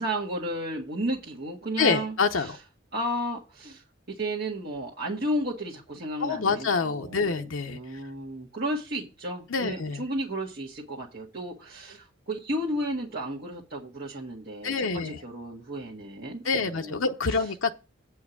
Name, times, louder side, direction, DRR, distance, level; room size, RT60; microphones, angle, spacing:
voice 1, 0.0-2.5 2.9-3.8 4.2-17.0, right 1 dB, 55° right, 1.7 m, -33 dB
voice 2, 1.8-2.6 6.2-7.8 9.5-10.0 14.6-15.2 16.4-17.7, left 4 dB, 85° left, 0.8 m, -26 dB
8.6 x 4.8 x 7.1 m
head